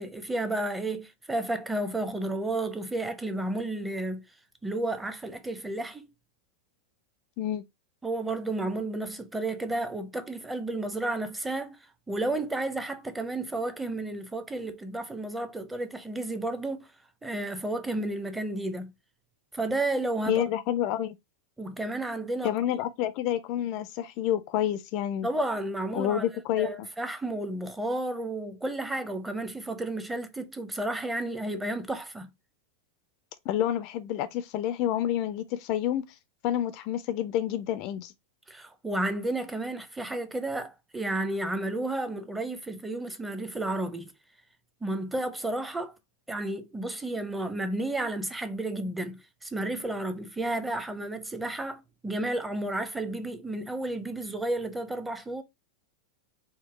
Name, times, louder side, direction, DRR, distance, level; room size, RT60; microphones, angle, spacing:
voice 1, 0.0-4.3 4.6-6.1 8.0-11.8 12.1-16.9 17.2-18.9 19.5-20.4 21.6-22.5 25.2-26.3 26.6-32.3 38.5-44.1 44.8-46.0 46.3-55.4, right 2 dB, 10° right, 0.6 m, -32 dB
voice 2, 20.3-21.2 22.4-25.3 25.9-26.9 33.5-36.0 36.4-38.1, left 11 dB, 45° left, 0.3 m, -28 dB
4.3 x 2.0 x 3.0 m
figure-of-eight pair, 90°, 0 cm